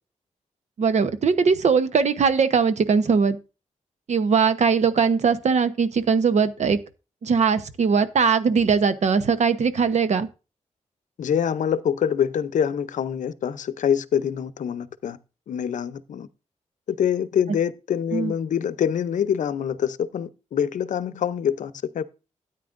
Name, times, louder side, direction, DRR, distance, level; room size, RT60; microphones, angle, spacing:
voice 1, 0.8-3.4 4.1-6.8 7.2-10.3 18.1-18.3, right 5 dB, 65° right, 0.9 m, -20 dB
voice 2, 11.2-15.2 15.5-16.3 16.9-22.0, left 8 dB, 80° left, 0.6 m, -25 dB
13.0 x 9.3 x 2.6 m
wide cardioid pair, 115°, 13 cm